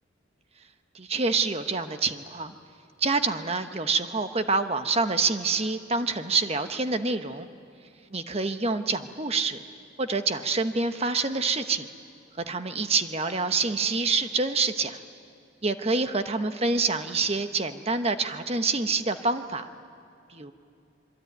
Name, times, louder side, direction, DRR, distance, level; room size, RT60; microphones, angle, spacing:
voice 1, 0.9-2.5 3.0-7.5 8.1-9.6 10.0-11.9 12.5-15.0 15.6-19.7 20.3-20.5, right 4 dB, 30° right, 8 dB, 1.1 m, -27 dB
26.0 x 23.5 x 9.3 m, 2.6 s
head